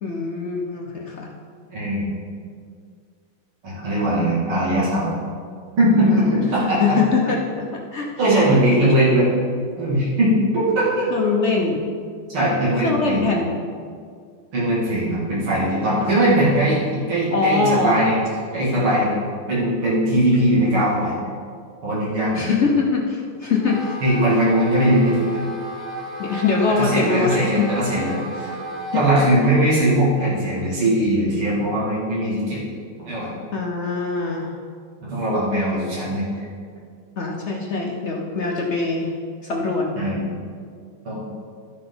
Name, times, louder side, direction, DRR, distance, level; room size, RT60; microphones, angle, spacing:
voice 1, 0.0-1.3 6.0-6.3 6.8-7.4 7.7-8.4 11.1-11.9 12.8-13.5 16.0-16.2 17.3-18.0 22.3-23.9 26.2-27.7 28.9-29.1 33.5-34.5 37.2-39.1 39.4-39.9, left 4 dB, 65° left, 0 dB, 0.6 m, -23 dB
voice 2, 1.7-2.0 3.6-5.1 5.8-7.0 8.2-9.3 9.8-11.1 12.3-13.3 14.5-18.2 18.5-19.2 19.5-21.1 21.8-22.4 24.0-25.4 26.8-28.5 28.9-32.6 33.0-33.3 35.0-36.5 40.0-40.2 41.0-41.2, right 1 dB, 90° right, -8 dB, 3.2 m, -20 dB
Wind instrument woodwind instrument, 23.6-29.2, right 1 dB, ahead, 0.8 m, -33 dB
13.0 x 5.9 x 3.8 m, 2.1 s
omnidirectional pair, 2.3 m